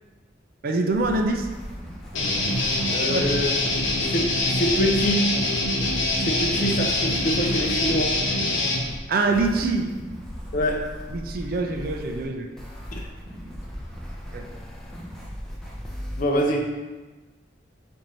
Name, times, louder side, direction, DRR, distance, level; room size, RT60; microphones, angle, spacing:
voice 1, 0.6-1.5 3.1-3.2 9.1-9.9 11.1-12.5 14.3-14.5, right 3 dB, 50° right, 4 dB, 0.4 m, -24 dB
sound 1, 0.9-16.2, equal, 5° left, 0.6 m, -38 dB
Guitar, 2.1-8.8, left 2 dB, 85° left, 0.8 m, -24 dB
voice 2, 2.9-3.5 4.1-5.4 6.2-8.2 10.5-10.9 12.9-13.1 16.2-16.8, equal, 45° left, 2 dB, 0.5 m, -25 dB
4.6 x 2.6 x 4.2 m, 1.2 s
head